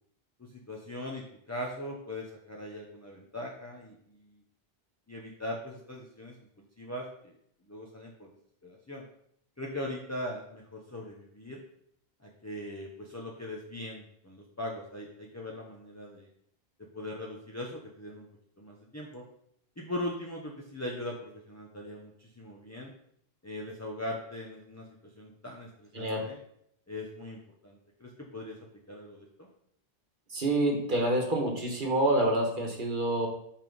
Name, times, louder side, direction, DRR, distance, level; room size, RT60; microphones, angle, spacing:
voice 1, 0.5-4.4 5.1-6.3 6.8-7.3 7.7-8.3 8.6-9.0 9.6-11.6 12.2-16.3 16.9-18.3 18.6-19.2 19.8-22.9 23.4-24.9 25.1-26.4 26.9-28.6 28.9-29.5, left 1 dB, 15° left, -2 dB, 0.8 m, -40 dB
voice 2, 30.3-33.3, right 1 dB, 55° right, 1 dB, 1.5 m, -27 dB
5.7 x 4.7 x 5.3 m, 0.71 s
omnidirectional pair, 1.0 m